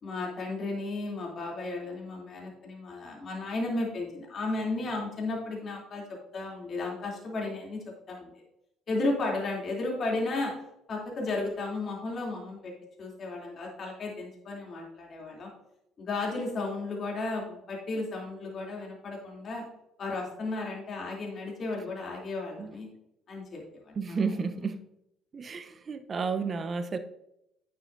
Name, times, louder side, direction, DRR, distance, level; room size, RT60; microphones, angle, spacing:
voice 1, 0.0-6.0 6.3-8.3 8.9-10.5 10.9-12.7 13.0-15.5 16.0-19.6 20.0-22.9 23.3-24.2, left 2 dB, 50° left, -1 dB, 3.0 m, -34 dB
voice 2, 24.0-24.8 25.3-27.0, right 5 dB, 40° right, 10 dB, 0.8 m, -31 dB
9.8 x 8.0 x 2.7 m, 0.83 s
hypercardioid pair, 55°, 0 cm